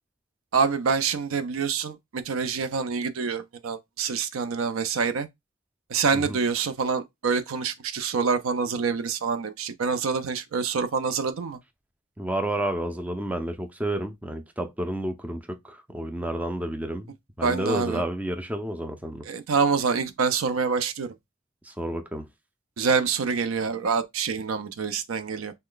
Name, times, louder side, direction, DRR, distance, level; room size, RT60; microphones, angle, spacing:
voice 1, 0.5-5.3 5.9-11.6 17.4-18.0 19.3-21.1 22.8-25.5, right 5 dB, 90° right, 0.5 m, -26 dB
voice 2, 12.2-19.2 21.6-22.3, right 1 dB, 5° right, 0.3 m, -30 dB
3.2 x 2.2 x 3.7 m
head